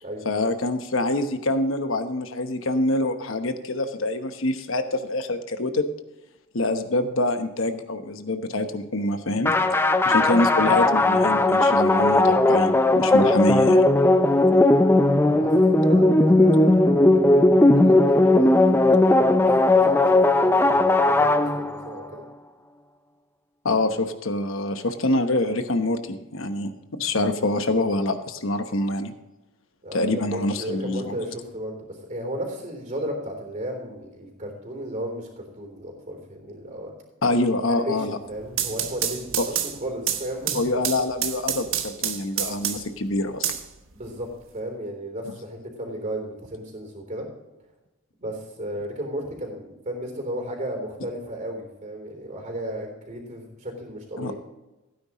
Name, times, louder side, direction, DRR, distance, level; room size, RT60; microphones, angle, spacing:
voice 1, 0.2-5.8 6.5-9.5 10.0-13.9 23.6-29.1 29.9-31.2 37.2-38.2 39.4-39.5 40.5-43.5 54.2-54.3, left 2 dB, 70° left, 8 dB, 1.1 m, -25 dB
sound 1, 9.4-22.0, left 2 dB, 10° left, 0.5 m, -18 dB
voice 2, 15.2-22.2 29.8-36.9 37.7-39.4 39.8-40.7 43.9-47.3 48.2-54.4, equal, 35° right, 2 dB, 3.6 m, -34 dB
sound 2, 38.3-43.0 43.4-44.4, right 10 dB, 70° right, 1.2 m, -28 dB
16.0 x 9.6 x 3.1 m, 1.0 s
head